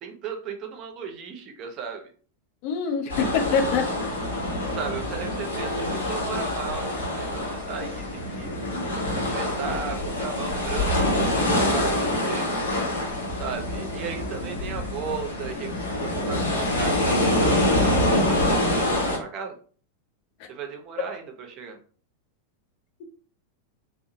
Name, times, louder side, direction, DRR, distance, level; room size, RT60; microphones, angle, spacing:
voice 1, 0.0-2.1 4.7-8.5 9.1-12.6 13.4-19.6 20.5-21.8, right 6 dB, 35° right, 4 dB, 0.6 m, -36 dB
voice 2, 2.6-4.1 20.4-20.5, left 6 dB, 45° left, 5 dB, 0.5 m, -25 dB
sound 1, 3.1-19.2, left 1 dB, 70° left, 0.8 m, -25 dB
2.7 x 2.0 x 2.7 m, 0.42 s
figure-of-eight pair, 90°, 0 cm